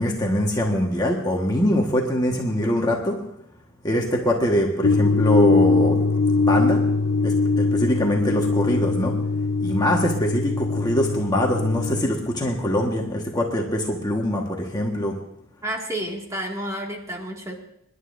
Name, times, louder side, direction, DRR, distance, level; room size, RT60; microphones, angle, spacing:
voice 1, 0.0-3.2 3.8-6.0 6.3-6.8 7.2-9.1 9.6-15.1, equal, 20° left, -1 dB, 1.4 m, -23 dB
sound 1, 4.8-12.0, left 3 dB, 60° left, 0.7 m, -22 dB
voice 2, 15.6-17.5, right 1 dB, 15° right, 0 dB, 2.1 m, -30 dB
26.0 x 11.5 x 2.6 m, 0.79 s
head